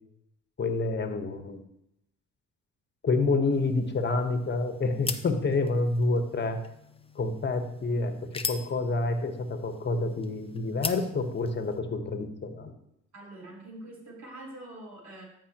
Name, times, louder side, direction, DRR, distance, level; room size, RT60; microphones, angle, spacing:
voice 1, 0.6-1.6 3.0-6.6 7.1-8.2 8.4-12.7, left 3 dB, 35° left, 7 dB, 1.2 m, -28 dB
sound 1, 3.5-11.8, left 4 dB, 20° left, 0.6 m, -41 dB
voice 2, 13.1-15.2, right 1 dB, 65° right, -2 dB, 3.7 m, -44 dB
14.0 x 5.5 x 3.0 m, 0.80 s
cardioid pair, 90°, 30 cm